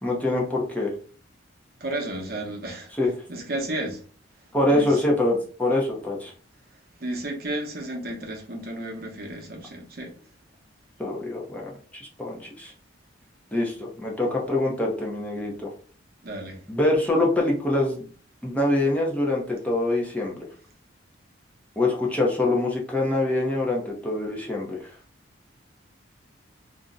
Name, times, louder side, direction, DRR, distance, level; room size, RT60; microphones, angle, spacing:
voice 1, 0.0-0.9 3.0-3.1 4.5-6.3 11.0-12.7 13.5-15.7 16.7-18.1 18.4-20.5 21.8-24.9, left 2 dB, 10° left, 0.6 m, -25 dB
voice 2, 1.8-2.9 3.3-4.0 4.7-5.0 7.0-10.1 16.2-16.6, right 1 dB, 50° right, 0.7 m, -32 dB
2.5 x 2.1 x 3.7 m
head